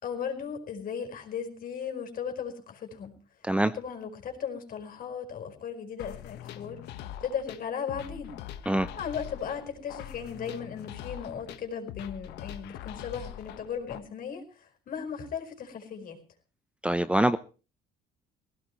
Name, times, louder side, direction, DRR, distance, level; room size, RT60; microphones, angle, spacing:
voice 1, 0.0-3.1 3.7-6.8 7.2-8.3 9.0-16.2, left 7 dB, 55° left, 5 dB, 5.0 m, -36 dB
sound 1, 6.0-14.0, left 11 dB, 85° left, 1.4 m, -43 dB
voice 2, 16.8-17.4, right 1 dB, 5° right, 13 dB, 0.8 m, -24 dB
20.0 x 16.5 x 3.2 m, 0.34 s
cardioid pair, 110°, 17 cm